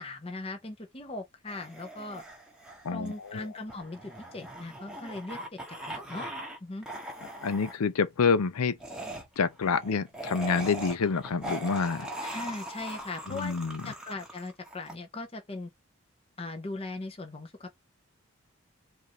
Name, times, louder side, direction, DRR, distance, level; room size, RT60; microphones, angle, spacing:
voice 1, 0.0-2.2 2.9-5.6 5.8-6.3 6.6-6.9 12.2-13.5 13.8-15.7 16.4-17.7, left 2 dB, 25° left, 0.8 m, -39 dB
sound 1, 1.5-6.6 6.8-7.8 8.8-14.9, right 1 dB, 5° right, 1.0 m, -41 dB
voice 2, 2.8-3.5 7.4-8.8 9.4-12.1 13.3-13.8, left 5 dB, 90° left, 0.5 m, -27 dB
4.7 x 2.6 x 3.1 m
head